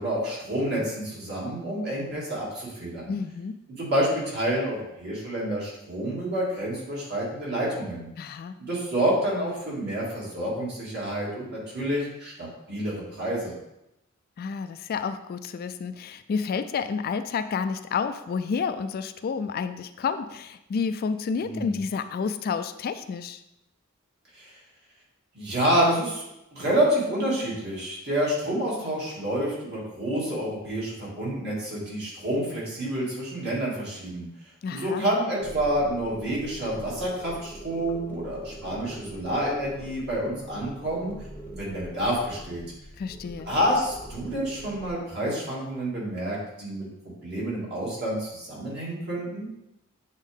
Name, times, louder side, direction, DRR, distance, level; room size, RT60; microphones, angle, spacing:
voice 1, 0.0-3.1 3.8-8.1 8.6-13.5 21.4-21.8 24.3-24.5 25.3-34.3 34.7-41.1 41.5-42.6 43.4-49.5, right 1 dB, 55° right, -5 dB, 2.5 m, -28 dB
voice 2, 3.1-3.5 8.2-8.6 14.4-23.4 34.6-35.0 43.0-43.5, left 5 dB, 50° left, 10 dB, 0.3 m, -30 dB
sound 1, 35.4-44.9, equal, 10° left, 0.8 m, -43 dB
8.2 x 3.6 x 3.6 m, 0.86 s
head